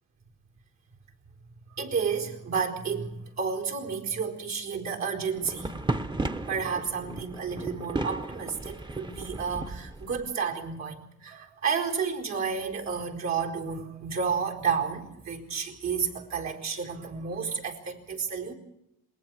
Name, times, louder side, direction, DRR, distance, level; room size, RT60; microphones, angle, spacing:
voice 1, 1.7-5.8 6.5-18.5, right 6 dB, 65° right, -1 dB, 4.5 m, -31 dB
sound 1, 5.3-10.3, right 2 dB, 15° right, 1.0 m, -34 dB
27.5 x 21.0 x 4.8 m, 0.85 s
cardioid pair, 90°, 30 cm